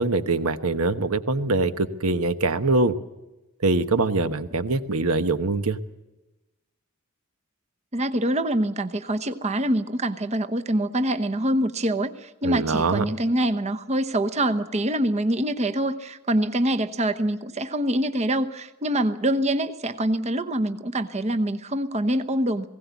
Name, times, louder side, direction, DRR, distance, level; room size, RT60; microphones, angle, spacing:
voice 1, 0.0-2.9 3.6-5.8 12.4-13.0, right 3 dB, 75° right, 11 dB, 1.2 m, -23 dB
voice 2, 7.9-22.7, right 1 dB, 30° right, 9 dB, 0.9 m, -25 dB
20.0 x 17.0 x 8.3 m, 1.0 s
head